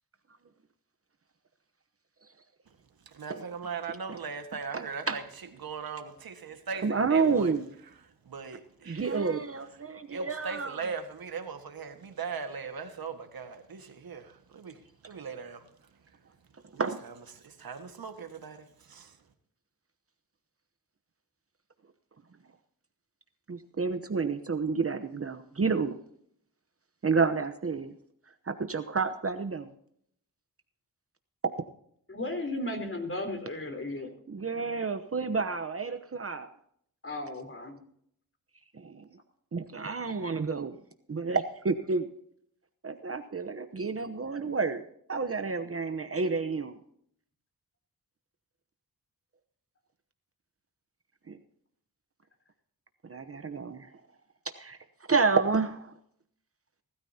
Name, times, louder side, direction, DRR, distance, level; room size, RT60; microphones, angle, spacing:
voice 1, 3.0-5.2 5.6-7.5 8.0-9.2 10.1-16.2 16.7-19.2, right 5 dB, 75° right, 1.7 m, -40 dB
voice 2, 4.7-5.2 6.8-7.7 8.9-10.7 16.8-17.0 23.5-25.9 27.0-27.9 28.5-29.7 34.3-36.5 38.7-39.0 39.5-40.8 41.1-42.1 42.8-44.8 45.1-46.8 51.3-51.4 53.0-53.9 54.5-54.8 55.1-55.9, right 4 dB, 40° right, 1.0 m, -29 dB
voice 3, 32.1-34.1 37.0-37.8, left 1 dB, 35° left, 3.8 m, -35 dB
19.5 x 13.0 x 2.8 m
cardioid pair, 80°, 36 cm